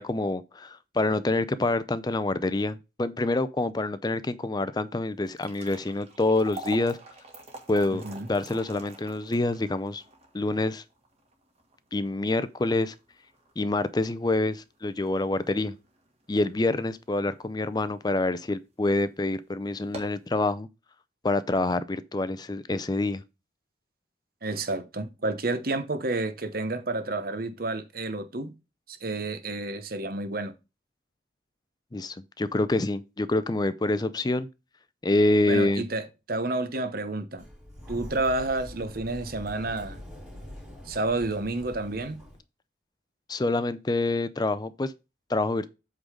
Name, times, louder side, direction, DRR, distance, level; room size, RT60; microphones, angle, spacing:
voice 1, 0.0-7.0 7.7-8.0 8.3-10.0 10.3-10.8 11.9-12.9 13.6-15.7 16.3-20.7 21.2-23.2 31.9-34.5 35.0-35.9 43.3-44.9 45.3-45.7, left 2 dB, 20° left, 0.5 m, -26 dB
sound 1, 5.2-17.5 17.9-18.0 18.7-18.9 19.2-19.3 19.7-20.3, right 2 dB, 35° right, 1.8 m, -46 dB
voice 2, 7.9-8.3 24.4-28.5 28.9-30.5 35.5-37.4 37.9-40.0 40.9-42.2, right 2 dB, 50° right, 1.0 m, -30 dB
Sliding door, 37.4-42.4, left 1 dB, 5° right, 3.5 m, -44 dB
8.2 x 3.8 x 5.0 m
head